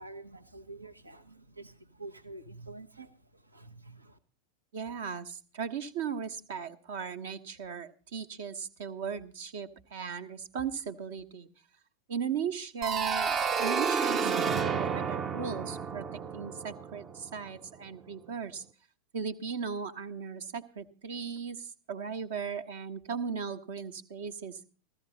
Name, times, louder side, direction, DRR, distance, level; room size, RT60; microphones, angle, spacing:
voice 1, 0.0-4.2, right 2 dB, 80° right, 9 dB, 1.1 m, -48 dB
voice 2, 4.7-11.5 12.1-18.6 19.1-24.6, right 6 dB, 55° right, 9 dB, 1.2 m, -37 dB
sound 1, 12.8-17.5, right 6 dB, 25° right, 0.7 m, -31 dB
15.0 x 14.0 x 4.2 m, 0.39 s
figure-of-eight pair, 90°, 0 cm